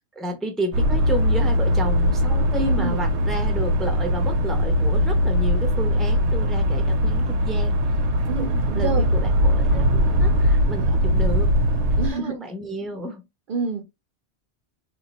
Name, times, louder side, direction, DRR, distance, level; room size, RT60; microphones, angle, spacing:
voice 1, 0.1-8.0 8.3-11.5 12.1-13.3, right 1 dB, ahead, 0.6 m, -31 dB
sound 1, 0.7-12.1, equal, 80° right, 1.0 m, -20 dB
voice 2, 2.6-3.0 8.3-9.1 12.0-12.4 13.5-13.8, right 5 dB, 55° right, 0.7 m, -28 dB
2.9 x 2.4 x 4.0 m
omnidirectional pair, 1.2 m